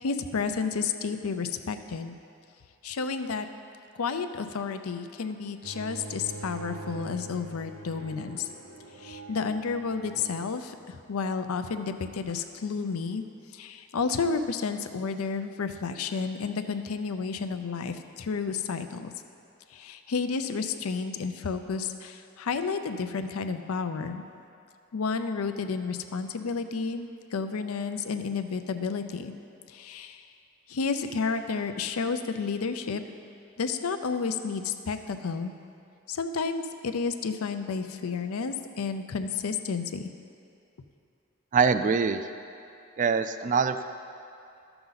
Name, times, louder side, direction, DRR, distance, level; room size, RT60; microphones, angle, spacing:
voice 1, 0.0-2.1 2.8-3.5 3.9-8.5 9.0-13.2 13.5-19.1 19.7-24.2 24.9-29.3 29.7-30.2 30.7-33.0 33.6-35.5 36.1-40.1, left 5 dB, 85° left, 9 dB, 0.5 m, -31 dB
Bowed string instrument, 5.6-10.7, right 2 dB, 75° right, 0.9 m, -43 dB
voice 2, 41.5-42.2 43.0-43.8, right 5 dB, 35° right, 10 dB, 0.3 m, -24 dB
12.5 x 6.9 x 4.0 m, 2.5 s
head